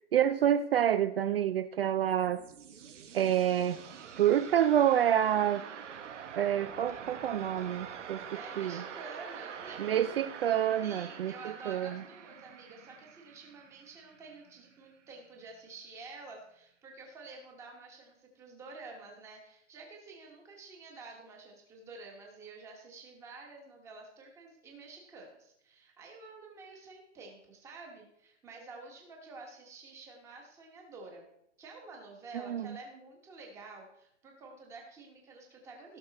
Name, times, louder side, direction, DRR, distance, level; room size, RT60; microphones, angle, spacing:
voice 1, 0.1-2.4 3.1-3.8 4.2-5.7 6.4-8.2 8.6-8.8 9.8-11.3 11.7-12.0 32.3-32.8, right 10 dB, 55° right, 12 dB, 0.5 m, -27 dB
sound 1, 1.9-14.7, right 7 dB, 80° right, 1.6 m, -46 dB
voice 2, 8.3-10.0 10.4-10.5 10.8-31.2 31.6-36.0, right 3 dB, 10° right, 1 dB, 1.3 m, -49 dB
16.5 x 6.5 x 4.2 m, 0.76 s
hypercardioid pair, 175°, 36 cm